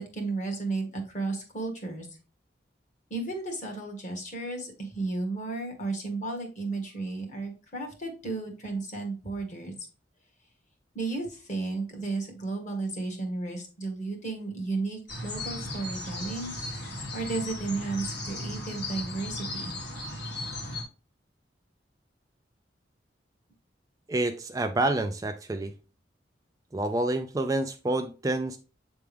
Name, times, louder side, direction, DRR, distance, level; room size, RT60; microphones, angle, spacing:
voice 1, 0.0-2.1 3.1-9.9 10.9-16.5 17.1-19.8, right 3 dB, 40° left, 2 dB, 1.7 m, -33 dB
sound 1, 15.1-20.8, left 1 dB, 65° left, 1.8 m, -36 dB
voice 2, 24.1-25.7 26.7-28.6, right 2 dB, 20° right, 7 dB, 0.4 m, -28 dB
8.0 x 3.5 x 3.3 m, 0.34 s
head